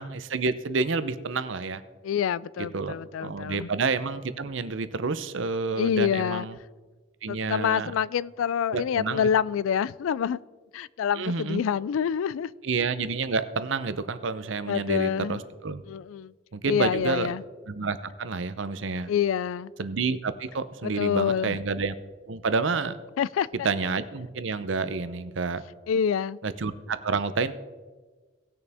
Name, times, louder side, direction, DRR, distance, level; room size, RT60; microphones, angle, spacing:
voice 1, 0.0-1.8 2.7-2.9 3.2-6.5 7.2-7.9 8.7-9.3 11.2-11.6 12.6-15.8 16.5-17.3 17.7-19.1 19.8-21.9 22.3-23.0 23.6-25.6 26.4-27.5, right 4 dB, 70° right, 13 dB, 0.7 m, -29 dB
voice 2, 2.0-3.7 5.8-6.5 7.3-10.4 10.7-12.5 14.7-15.4 15.9-16.3 16.7-17.4 19.1-19.7 20.8-21.6 23.2-23.7 25.9-26.4, left 8 dB, 85° left, 21 dB, 0.3 m, -27 dB
18.0 x 6.8 x 3.5 m, 1.3 s
head